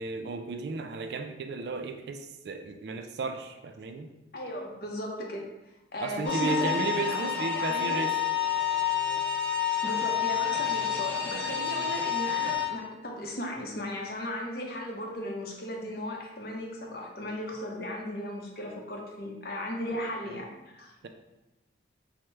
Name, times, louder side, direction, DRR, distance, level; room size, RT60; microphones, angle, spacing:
voice 1, 0.0-4.1 6.0-8.2 11.5-11.9 19.9-20.5 21.0-21.1, right 3 dB, 60° right, 6 dB, 0.3 m, -34 dB
voice 2, 4.3-5.5 5.9-8.1 9.8-20.5 20.7-20.9, left 1 dB, 55° left, 1 dB, 0.6 m, -36 dB
sound 1, 6.2-12.7, left 9 dB, 5° left, 0.7 m, -29 dB
4.6 x 2.1 x 3.2 m, 1.0 s
head